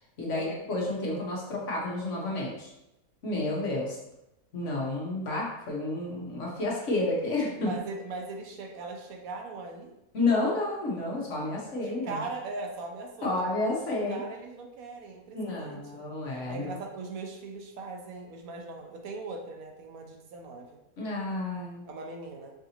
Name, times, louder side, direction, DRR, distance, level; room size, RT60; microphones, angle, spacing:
voice 1, 0.2-2.7 3.2-4.0 4.5-7.7 10.1-12.2 13.2-14.2 15.3-16.8 21.0-21.9, left 2 dB, 55° left, -3 dB, 1.1 m, -30 dB
voice 2, 7.6-9.9 11.8-13.4 14.1-16.0 16.5-20.7 21.9-22.5, right 3 dB, 75° right, 2 dB, 1.0 m, -39 dB
4.8 x 2.6 x 2.8 m, 0.88 s
omnidirectional pair, 1.6 m